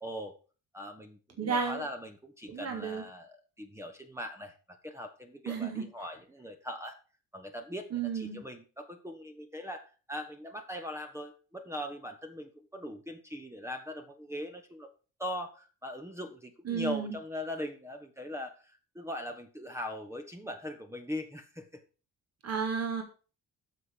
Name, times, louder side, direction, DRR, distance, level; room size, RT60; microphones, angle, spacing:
voice 1, 0.0-0.3 0.7-7.0 7.3-14.9 15.2-21.8, left 1 dB, 5° right, 5 dB, 1.5 m, -41 dB
voice 2, 1.4-1.9 2.5-3.0 5.5-5.9 7.9-8.4 16.6-17.2 22.4-23.0, right 6 dB, 40° right, 5 dB, 2.8 m, -32 dB
13.5 x 6.4 x 4.8 m, 0.35 s
figure-of-eight pair, 45°, 38 cm